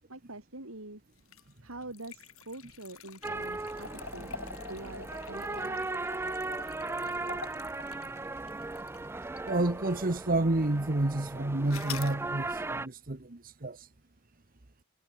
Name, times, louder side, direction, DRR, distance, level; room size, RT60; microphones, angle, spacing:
voice 1, 0.1-1.0 1.6-5.8, right 2 dB, 85° right, 5.8 m, -45 dB
sound 1, 1.2-9.6 10.1-10.2 11.7-12.2, left 6 dB, 90° left, 7.9 m, -46 dB
sound 2, 3.2-12.9, right 2 dB, 10° right, 0.3 m, -37 dB
voice 2, 9.5-13.8, right 2 dB, 45° right, 1.3 m, -29 dB
head